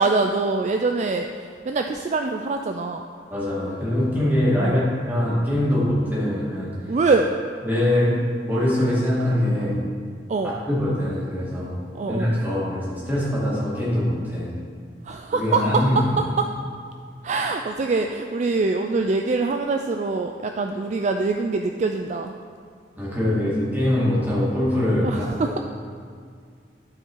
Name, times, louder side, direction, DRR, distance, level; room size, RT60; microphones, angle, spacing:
voice 1, 0.0-3.0 4.6-4.8 6.9-7.3 10.3-10.6 11.9-12.3 15.0-16.5 17.2-22.3 25.0-25.6, right 3 dB, 40° right, 4 dB, 0.3 m, -24 dB
voice 2, 3.3-6.7 7.6-9.8 10.7-11.7 12.0-14.5 15.3-16.0 23.0-25.1, left 1 dB, 10° right, -8 dB, 2.2 m, -23 dB
12.0 x 4.5 x 4.5 m, 2.2 s
head